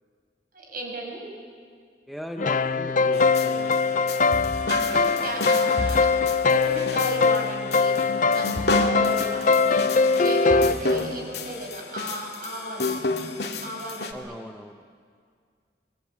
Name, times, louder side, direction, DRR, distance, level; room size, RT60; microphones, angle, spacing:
voice 1, 0.5-1.2 4.7-6.1 6.5-12.9 13.6-14.3, right 1 dB, 55° right, 0 dB, 6.7 m, -35 dB
voice 2, 2.1-4.1 10.9-11.3 14.1-14.8, equal, ahead, 3 dB, 0.9 m, -39 dB
sound 1, 2.4-10.7, left 4 dB, 45° left, 0.6 m, -22 dB
sound 2, 3.2-14.1, left 2 dB, 70° left, 2.1 m, -31 dB
25.5 x 23.5 x 8.8 m, 2.1 s
head